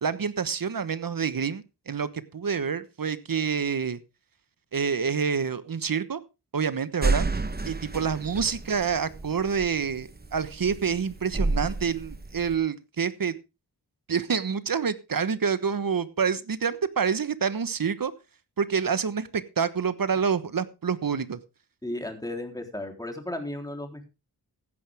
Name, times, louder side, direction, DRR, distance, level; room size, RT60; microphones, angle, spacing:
voice 1, 0.0-4.0 4.7-6.2 6.5-7.3 7.7-13.3 14.1-18.1 18.6-21.4, right 6 dB, 60° right, 14 dB, 1.3 m, -27 dB
sound 1, 7.0-12.5, right 3 dB, 25° right, 1.1 m, -30 dB
voice 2, 21.8-24.1, left 1 dB, 10° left, 4 dB, 3.6 m, -34 dB
15.5 x 10.5 x 3.6 m, 0.28 s
wide cardioid pair, 65°, 39 cm